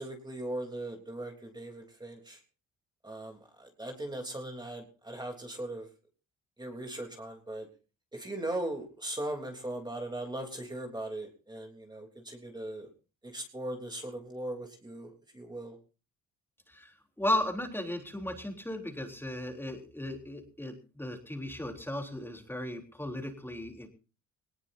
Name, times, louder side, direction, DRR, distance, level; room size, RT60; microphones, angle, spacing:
voice 1, 0.0-2.4 3.0-5.9 6.6-7.7 8.1-12.9 13.2-15.7, right 1 dB, 15° right, 2 dB, 3.3 m, -39 dB
voice 2, 16.7-23.9, left 1 dB, 5° left, 3 dB, 3.6 m, -35 dB
20.0 x 19.5 x 2.7 m, 0.34 s
cardioid pair, 90°, 30 cm